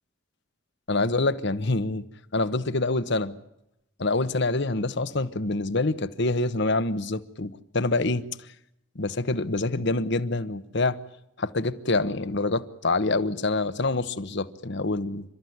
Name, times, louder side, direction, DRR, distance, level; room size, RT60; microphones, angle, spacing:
voice 1, 0.9-2.0 2.3-3.4 4.0-8.2 8.9-11.0 11.4-15.2, left 2 dB, 55° left, 1.1 m, -26 dB
29.0 x 13.5 x 9.5 m
head